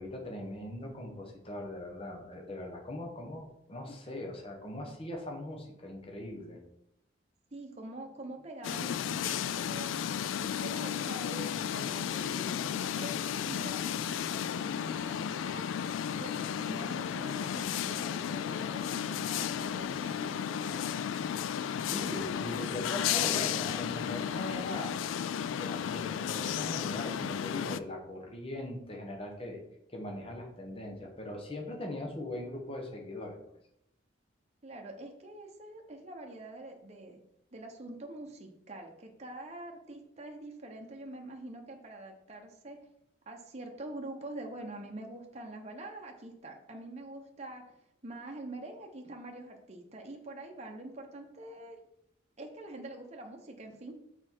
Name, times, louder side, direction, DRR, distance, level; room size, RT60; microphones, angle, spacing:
voice 1, 0.0-6.6 21.8-25.0 25.5-29.6 29.9-33.4, left 1 dB, 30° left, 1 dB, 1.0 m, -40 dB
voice 2, 7.5-10.0 10.4-15.7 16.2-21.1 34.6-37.2 37.5-42.8 43.3-47.7 48.0-51.8 52.4-54.0, right 2 dB, 35° right, 2 dB, 0.8 m, -45 dB
sound 1, 8.6-27.8, left 9 dB, 80° left, 0.3 m, -33 dB
6.0 x 4.5 x 4.5 m, 0.79 s
head